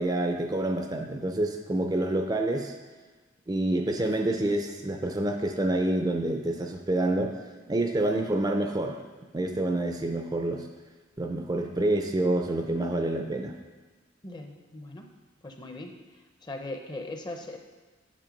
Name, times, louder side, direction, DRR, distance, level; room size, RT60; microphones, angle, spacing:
voice 1, 0.0-2.7 3.5-7.3 7.7-9.0 9.3-10.7 11.2-13.5, right 1 dB, 20° right, 4 dB, 0.5 m, -27 dB
voice 2, 14.2-15.1 15.4-15.9 16.4-17.6, left 2 dB, 25° left, 4 dB, 0.7 m, -39 dB
7.5 x 5.8 x 5.2 m, 1.3 s
head